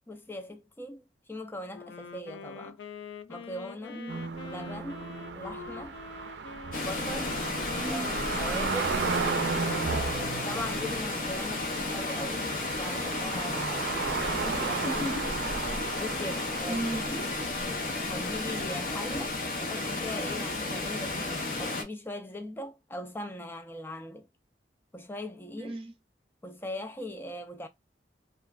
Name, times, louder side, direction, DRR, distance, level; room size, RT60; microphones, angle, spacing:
voice 1, 0.1-2.8 3.3-4.0 4.4-6.0 6.8-7.4 7.9-8.0 8.4-9.0 9.6-12.5 12.8-15.0 16.0-17.3 18.0-19.3 19.6-24.3 24.9-25.8 26.4-27.7, left 1 dB, 10° left, 0.4 m, -40 dB
Wind instrument woodwind instrument, 1.7-10.4, left 5 dB, 85° left, 0.3 m, -45 dB
voice 2, 3.9-4.4 7.8-8.4 13.9-15.4 16.2-17.2 25.6-25.9, right 1 dB, 30° right, 0.7 m, -38 dB
sound 1, 4.1-18.2 18.9-19.0, right 5 dB, 80° right, 0.4 m, -35 dB
Water, 6.7-21.8, left 2 dB, 50° left, 0.8 m, -33 dB
3.1 x 2.4 x 2.3 m
head